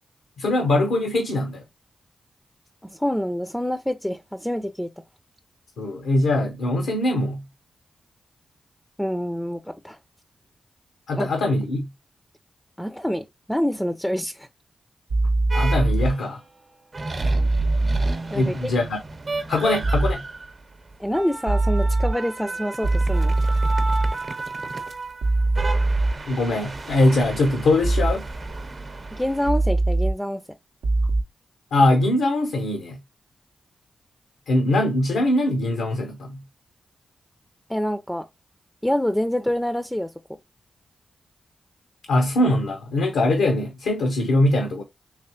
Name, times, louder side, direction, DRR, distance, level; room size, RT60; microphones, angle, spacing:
voice 1, 0.4-1.6 5.8-7.4 11.1-11.9 15.5-16.4 18.3-19.0 19.5-20.2 26.3-28.2 31.7-33.0 34.5-36.4 42.1-44.8, left 1 dB, 90° left, 0.6 m, -22 dB
voice 2, 2.8-4.9 9.0-10.0 11.2-11.3 12.8-14.5 18.3-18.7 21.0-23.3 29.1-30.4 37.7-38.3 38.8-40.1, equal, 5° left, 0.4 m, -26 dB
sound 1, 15.1-16.1 17.2-18.1 19.8-20.1 21.5-22.1 22.8-24.1 25.2-26.1 27.8-28.1 29.5-30.1 30.8-31.2, right 2 dB, 85° right, 0.6 m, -21 dB
sound 2, 15.5-16.3 16.9-29.5, right 3 dB, 55° right, 0.8 m, -33 dB
3.3 x 3.2 x 2.9 m
supercardioid pair, 45°, 0 cm